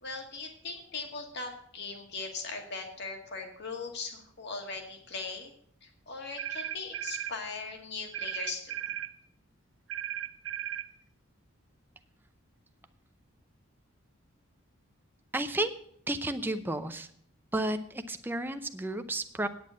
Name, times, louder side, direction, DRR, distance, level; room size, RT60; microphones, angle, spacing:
voice 1, 0.0-5.5 5.8-8.9, left 4 dB, 55° left, 3 dB, 1.9 m, -39 dB
sound 1, 6.4-7.4 8.1-9.1 9.9-10.9, right 11 dB, 65° right, 0.6 m, -36 dB
voice 2, 15.3-15.7 16.1-17.1 17.5-19.5, right 1 dB, 10° right, 8 dB, 0.6 m, -32 dB
9.1 x 8.6 x 6.2 m, 0.65 s
head